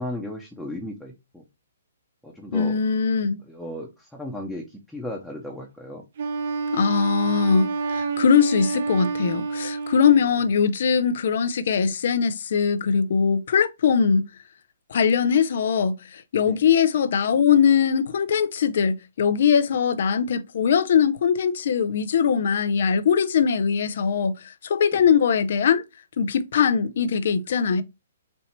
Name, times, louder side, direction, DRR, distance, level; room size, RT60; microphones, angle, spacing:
voice 1, 0.0-1.4 2.2-2.8 3.4-6.0 10.1-10.3 16.5-16.6 24.9-25.0, left 1 dB, ahead, 0.9 m, -35 dB
voice 2, 2.5-3.4 6.7-14.2 14.9-25.8 26.2-27.8, left 6 dB, 60° left, 0.6 m, -21 dB
Wind instrument woodwind instrument, 6.2-10.5, right 4 dB, 55° right, 0.7 m, -28 dB
4.3 x 2.8 x 4.4 m
hypercardioid pair, 140°, 0 cm